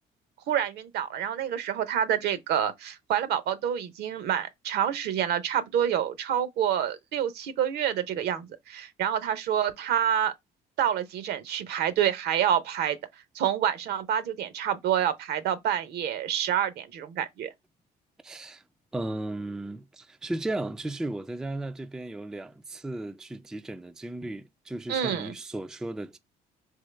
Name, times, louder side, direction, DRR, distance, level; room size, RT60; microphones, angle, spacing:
voice 1, 0.5-10.3 10.8-13.0 13.3-17.5 24.9-25.3, right 9 dB, 75° right, 0.7 m, -27 dB
voice 2, 18.2-18.6 18.9-26.2, right 2 dB, 5° right, 0.3 m, -35 dB
3.7 x 3.0 x 3.2 m
cardioid pair, 110°, 17 cm